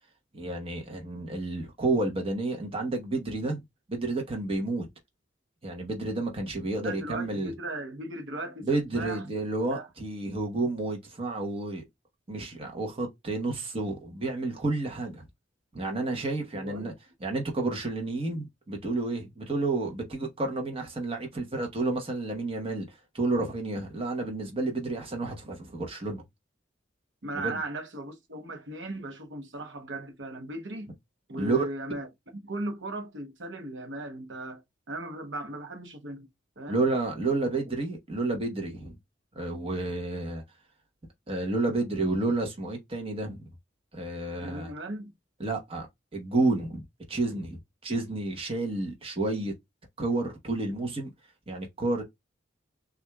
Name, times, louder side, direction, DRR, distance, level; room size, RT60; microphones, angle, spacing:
voice 1, 0.3-3.6 3.9-4.9 5.6-7.5 8.6-11.8 12.3-15.2 15.7-16.9 17.2-26.2 27.3-27.6 31.4-31.6 36.7-39.0 39.3-40.4 41.3-43.5 43.9-44.7 45.4-45.9 46.1-49.5 50.0-51.1 51.5-52.0, right 2 dB, 30° right, 1.0 m, -30 dB
voice 2, 6.8-8.7 8.9-9.2 9.7-9.9 16.5-16.9 27.2-30.9 31.3-32.1 32.4-34.6 34.9-36.3 36.6-36.8 44.4-45.1, right 2 dB, 70° right, 0.9 m, -37 dB
6.1 x 2.5 x 2.2 m
head